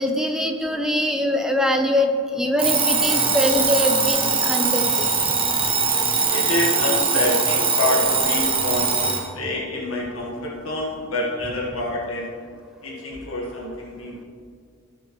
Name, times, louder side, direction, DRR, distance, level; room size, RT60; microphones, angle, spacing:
voice 1, 0.0-5.1, left 1 dB, 5° right, 3 dB, 0.7 m, -23 dB
Alarm, 2.6-9.3, right 5 dB, 25° right, 1.2 m, -21 dB
voice 2, 5.9-12.3 12.8-14.1, left 1 dB, 80° left, -3 dB, 1.5 m, -27 dB
16.5 x 6.9 x 3.1 m, 2.2 s
head